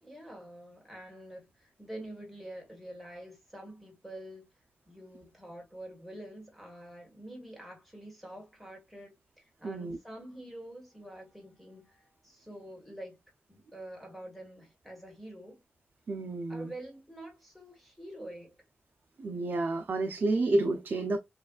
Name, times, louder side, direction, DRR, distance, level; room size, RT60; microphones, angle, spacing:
voice 1, 0.0-4.5 4.9-13.2 13.5-15.6 16.5-18.6, right 1 dB, ahead, 1.7 m, -47 dB
voice 2, 9.6-10.0 16.1-16.7 19.2-21.2, right 2 dB, 50° right, 0.6 m, -30 dB
6.6 x 2.4 x 2.4 m
wide cardioid pair, 155°, 4 cm